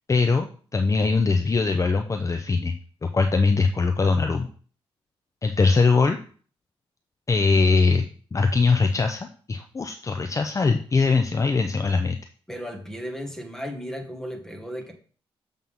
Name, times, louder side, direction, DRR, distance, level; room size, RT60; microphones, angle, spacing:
voice 1, 0.1-2.7 3.1-4.5 5.4-6.2 7.3-12.2, left 4 dB, 30° left, 5 dB, 0.7 m, -21 dB
voice 2, 12.5-14.9, equal, 5° left, 5 dB, 1.6 m, -35 dB
7.5 x 3.6 x 5.6 m, 0.42 s
cardioid pair, 80°, 10 cm